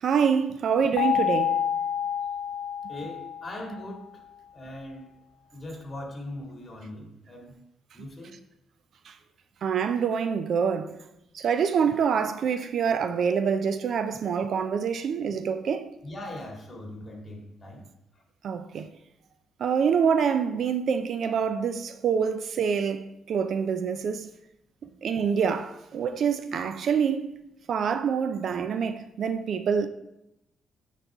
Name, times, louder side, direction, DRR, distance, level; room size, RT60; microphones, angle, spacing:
voice 1, 0.0-1.6 9.1-9.2 9.6-11.0 11.3-15.9 18.4-18.9 19.6-24.3 25.0-27.3 27.7-29.9, right 6 dB, 60° right, 0.4 m, -26 dB
sound 1, 1.0-3.9, left 8 dB, 75° left, 0.9 m, -28 dB
voice 2, 2.9-4.2 4.5-5.2 5.5-7.6 7.9-8.3 16.0-17.8, left 1 dB, 30° left, 2.1 m, -40 dB
9.9 x 4.1 x 3.5 m
cardioid pair, 90°, 0 cm